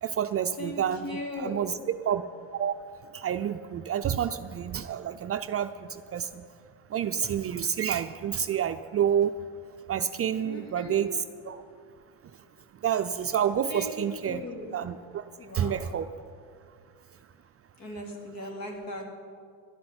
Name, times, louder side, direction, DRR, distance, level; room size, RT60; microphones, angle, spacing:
voice 1, 0.0-2.2 2.5-2.7 3.1-6.3 6.9-9.3 9.9-11.6 12.8-14.4 14.7-15.2 15.5-16.1, right 9 dB, 35° right, 9 dB, 0.5 m, -29 dB
voice 2, 0.6-1.6 10.4-11.0 13.7-13.9 14.3-14.7 15.4-15.8 17.8-19.0, left 1 dB, 55° left, 0 dB, 3.6 m, -38 dB
12.0 x 7.6 x 9.7 m, 2.3 s
supercardioid pair, 80°, 41 cm